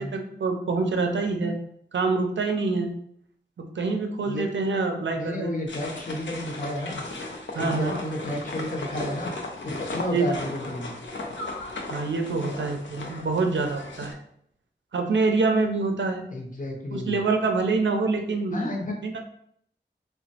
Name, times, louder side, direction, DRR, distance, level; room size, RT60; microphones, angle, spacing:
voice 1, 0.0-1.6 1.9-2.9 3.6-5.5 7.5-8.0 10.1-10.3 11.9-14.2 14.9-16.3 16.9-18.6 19.0-19.3, right 3 dB, 80° right, 4 dB, 0.5 m, -26 dB
voice 2, 5.1-7.1 7.6-9.3 9.6-10.9 16.3-17.2 18.5-19.0, left 1 dB, 45° left, 1 dB, 0.7 m, -31 dB
sound 1, 5.7-14.1, left 2 dB, 80° left, 0.5 m, -36 dB
3.0 x 2.2 x 2.7 m, 0.69 s
wide cardioid pair, 50°, 19 cm